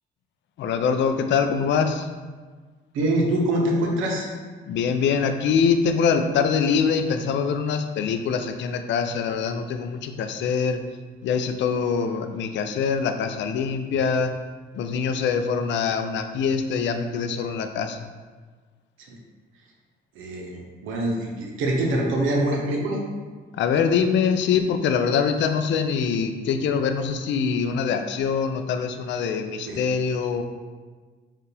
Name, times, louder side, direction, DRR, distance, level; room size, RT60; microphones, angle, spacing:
voice 1, 0.6-2.1 4.7-10.8 11.2-14.3 14.7-18.0 23.6-30.4, left 6 dB, 70° left, 7 dB, 0.4 m, -24 dB
voice 2, 2.9-4.3 13.9-14.0 19.1-19.2 20.1-23.0 29.6-29.8, right 1 dB, 90° right, 0 dB, 0.8 m, -24 dB
4.5 x 2.4 x 3.3 m, 1.4 s
cardioid pair, 90°, 20 cm